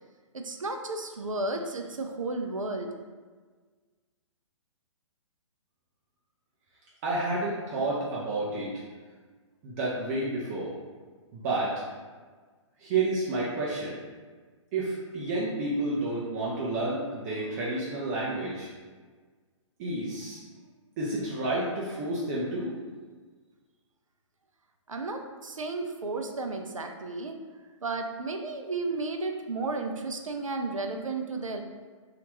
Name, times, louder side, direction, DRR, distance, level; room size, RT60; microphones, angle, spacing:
voice 1, 0.3-2.9 24.9-27.4 27.8-31.6, right 3 dB, 85° right, 4 dB, 0.4 m, -33 dB
voice 2, 7.0-8.7 9.6-10.7 11.3-11.8 12.8-14.0 14.7-18.7 19.8-20.4 21.0-22.7, right 2 dB, 30° right, -6 dB, 0.5 m, -30 dB
2.8 x 2.4 x 3.0 m, 1.4 s
figure-of-eight pair, 125°, 17 cm